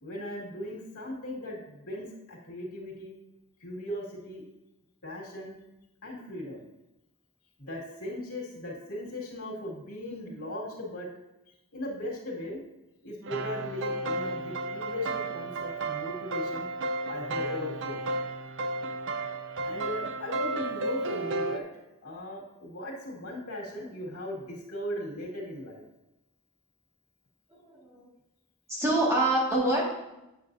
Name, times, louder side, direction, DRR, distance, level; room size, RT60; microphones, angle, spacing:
voice 1, 0.0-3.1 3.6-4.4 5.0-5.6 6.0-6.7 7.6-11.1 11.7-12.6 13.0-16.7 17.1-18.0 19.6-21.7 22.0-25.8, left 1 dB, 85° left, -3 dB, 2.2 m, -38 dB
sound 1, 13.2-21.6, right 2 dB, 55° right, 0.6 m, -33 dB
voice 2, 27.5-28.1 28.7-29.8, right 1 dB, 15° right, -5 dB, 1.9 m, -26 dB
9.5 x 7.0 x 2.7 m, 0.93 s
head